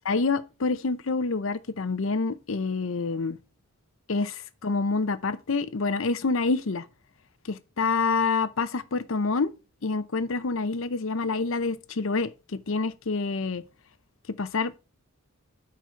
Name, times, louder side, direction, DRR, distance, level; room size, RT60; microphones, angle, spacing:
voice 1, 0.1-3.4 4.1-6.8 7.5-9.5 9.8-13.6 14.4-14.8, left 4 dB, 65° left, 0.6 m, -27 dB
7.6 x 5.3 x 4.5 m
head